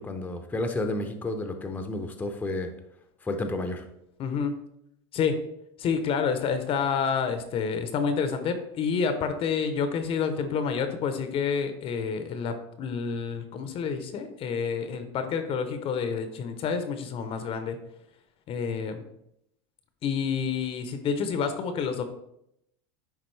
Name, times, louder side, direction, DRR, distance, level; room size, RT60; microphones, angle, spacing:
voice 1, 0.0-2.7 3.2-3.8, left 2 dB, 10° left, 6 dB, 0.7 m, -31 dB
voice 2, 4.2-4.5 5.1-5.3 5.8-17.8 18.5-19.0 20.0-22.0, left 6 dB, 40° left, 9 dB, 0.8 m, -28 dB
9.9 x 3.6 x 3.3 m, 0.79 s
supercardioid pair, 110°, 14 cm